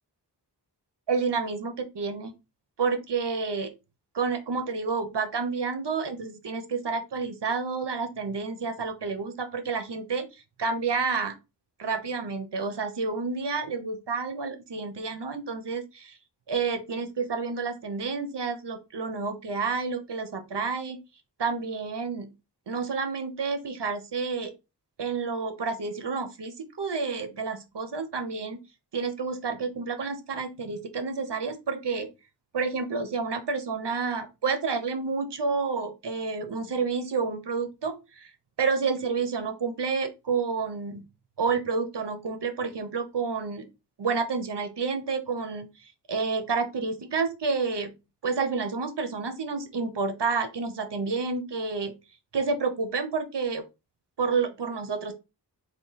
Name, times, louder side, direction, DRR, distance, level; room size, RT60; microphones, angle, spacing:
voice 1, 1.1-2.3 2.8-3.7 4.1-11.3 11.8-16.2 16.5-21.0 21.4-22.3 22.7-24.5 25.0-28.6 28.9-32.1 32.5-38.3 38.6-41.0 41.4-43.7 44.0-45.7 46.1-48.0 48.2-51.9 52.3-53.6 54.2-55.1, right 4 dB, 85° right, 8 dB, 0.7 m, -29 dB
3.5 x 2.3 x 3.9 m, 0.27 s
wide cardioid pair, 50°, 40 cm